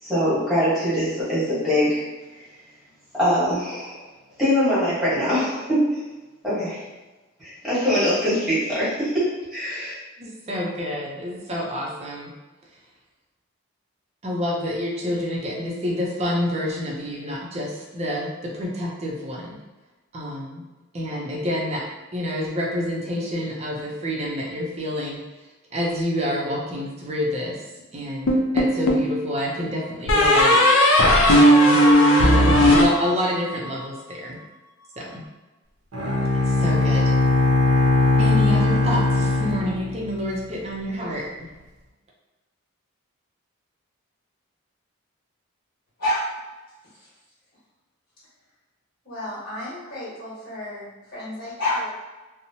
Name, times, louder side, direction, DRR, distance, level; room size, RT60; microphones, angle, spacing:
voice 1, 0.0-2.0 2.3-2.4 3.2-4.0 4.4-6.0 6.4-6.8 7.4-9.9, equal, ahead, -11 dB, 1.2 m, -23 dB
voice 2, 10.2-12.3 14.2-19.6 20.1-20.6 20.9-21.9 22.1-25.2 25.7-27.6 27.9-30.6 30.9-31.8 32.2-34.4 35.0-35.2 36.5-37.1 38.2-41.5, equal, 30° right, -2 dB, 0.5 m, -28 dB
sound 1, 28.3-29.1 30.1-33.6, equal, 75° left, 0.5 m, -16 dB
Bowed string instrument, 35.9-40.4, left 2 dB, 90° right, 0.6 m, -20 dB
voice 3, 49.0-51.9, left 1 dB, 45° left, -10 dB, 1.4 m, -29 dB
2.9 x 2.0 x 2.7 m, 1.1 s
head